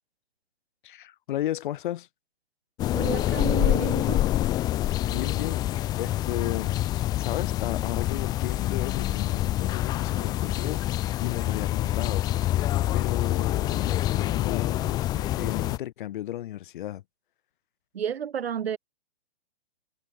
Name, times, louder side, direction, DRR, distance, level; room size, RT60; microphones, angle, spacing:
voice 1, 0.8-2.1 5.1-10.8 11.2-12.3 12.5-17.0, left 13 dB, 55° left, 5.9 m, -34 dB
sound 1, 2.8-15.8, left 14 dB, 15° left, 0.5 m, -26 dB
voice 2, 2.9-4.2 17.9-18.8, right 8 dB, 80° right, 2.2 m, -31 dB
hypercardioid pair, 140°, 31 cm